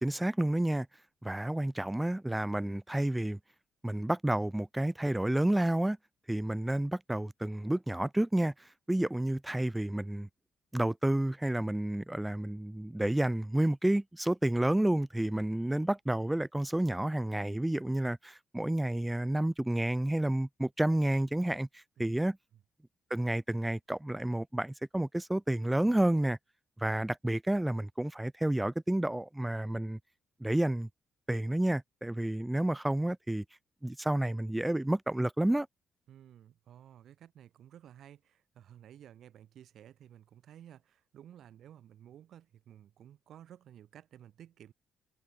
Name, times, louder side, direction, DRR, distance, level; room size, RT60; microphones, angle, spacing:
voice 1, 0.0-0.9 1.2-3.4 3.8-6.0 6.3-10.3 10.7-22.4 23.1-26.4 26.8-30.0 30.4-30.9 31.3-33.4 33.8-35.7, right 1 dB, 10° right, 1.0 m, -30 dB
voice 2, 22.0-22.3 36.1-44.7, right 10 dB, 70° right, 6.8 m, -54 dB
cardioid pair, 90°, 0 cm